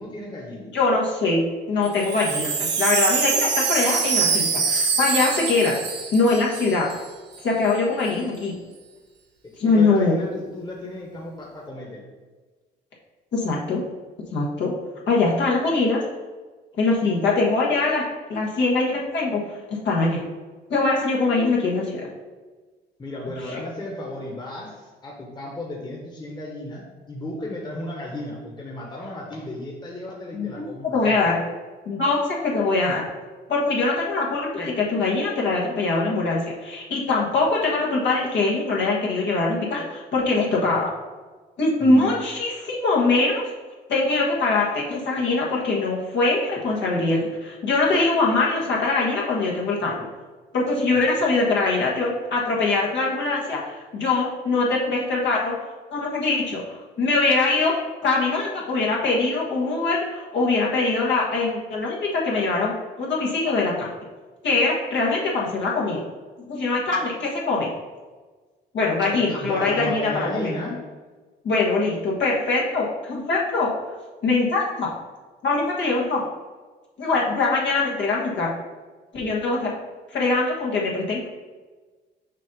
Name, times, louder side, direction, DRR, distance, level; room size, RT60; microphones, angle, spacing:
voice 1, 0.0-0.7 9.4-12.0 23.0-31.4 41.8-42.2 69.1-70.8, left 1 dB, 20° left, -3 dB, 1.3 m, -34 dB
voice 2, 0.7-1.4 1.7-5.7 6.1-6.8 7.4-8.5 9.6-10.2 13.3-13.8 14.3-14.7 15.1-16.0 16.8-18.0 18.3-19.4 19.7-20.2 20.7-22.0 23.5-23.6 30.3-31.4 31.8-33.0 33.5-40.9 41.6-43.5 43.9-50.0 50.5-55.5 55.9-57.7 58.0-62.7 63.0-63.9 64.4-66.0 66.5-67.7 68.7-70.1 70.4-70.5 71.4-73.7 74.2-74.9 75.4-76.2 77.0-78.5 79.1-79.7 80.1-81.3, left 3 dB, 70° left, -4 dB, 1.5 m, -22 dB
Wind chime, 1.9-7.1 7.3-7.4 7.6-8.1, right 5 dB, 60° right, 1.0 m, -24 dB
6.3 x 2.8 x 5.3 m, 1.3 s
cardioid pair, 80°, 19 cm